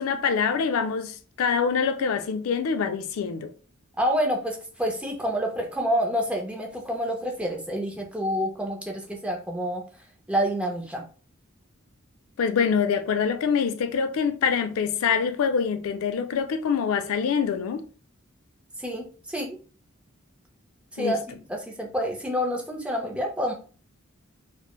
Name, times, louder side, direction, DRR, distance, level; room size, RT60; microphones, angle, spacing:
voice 1, 0.0-3.5 12.4-17.8 21.0-21.2, left 6 dB, 85° left, 0.3 m, -25 dB
voice 2, 4.0-9.8 10.3-11.1 18.8-19.6 20.9-23.5, equal, 5° right, 0.4 m, -28 dB
3.1 x 2.0 x 2.2 m
head